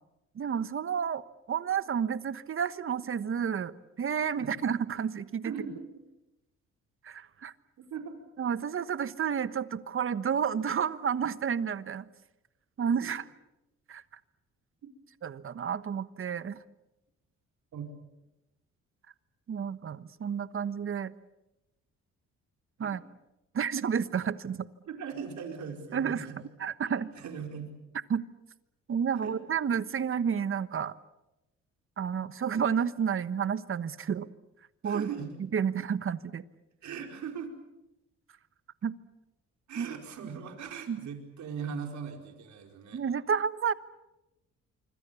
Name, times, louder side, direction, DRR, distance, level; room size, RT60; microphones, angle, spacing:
voice 1, 0.3-3.7 4.0-5.5 7.0-7.5 8.4-12.1 12.8-13.2 13.9-14.0 15.2-16.6 19.5-21.1 22.8-23.0 23.5-24.7 25.9-26.3 26.6-27.1 28.1-28.2 28.9-30.9 32.0-34.3 34.8-35.1 35.5-36.4 38.8-38.9 39.8-39.9 40.9-41.0 42.9-43.7, right 7 dB, 45° right, 14 dB, 1.2 m, -30 dB
voice 2, 5.4-5.8 7.9-8.2 12.9-13.1 14.8-14.9 17.7-17.9 22.8-23.0 24.9-26.4 27.1-27.7 29.1-29.3 34.8-35.3 36.8-37.5 39.7-43.0, right 6 dB, 70° right, 3 dB, 4.8 m, -39 dB
26.0 x 25.0 x 7.1 m, 0.94 s
cardioid pair, 90°, 30 cm